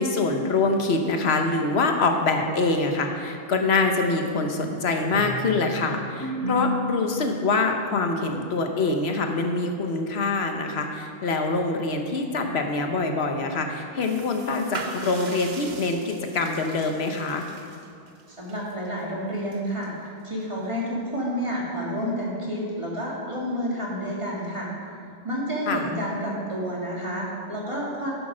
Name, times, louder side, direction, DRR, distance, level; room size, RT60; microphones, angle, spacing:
voice 1, 0.0-17.5 25.7-26.0, left 3 dB, 75° left, 4 dB, 1.2 m, -25 dB
sound 1, 4.0-7.6, equal, 75° right, 3.2 m, -34 dB
sound 2, 14.0-20.7, right 4 dB, 50° right, 0.8 m, -42 dB
voice 2, 18.4-24.7 25.2-28.1, equal, 30° right, -5 dB, 2.2 m, -30 dB
10.0 x 6.9 x 6.1 m, 2.3 s
omnidirectional pair, 1.1 m